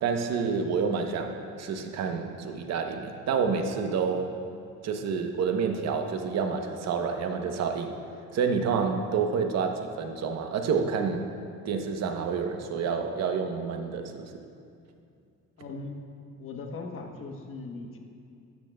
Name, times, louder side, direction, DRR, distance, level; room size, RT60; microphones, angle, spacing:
voice 1, 0.0-4.3 4.8-7.9 8.3-11.3 11.6-14.4, right 5 dB, 60° right, 5 dB, 0.9 m, -28 dB
voice 2, 15.6-16.0 16.4-18.0, left 3 dB, 45° left, 3 dB, 1.1 m, -39 dB
13.0 x 10.5 x 2.3 m, 2.4 s
cardioid pair, 140°, 30 cm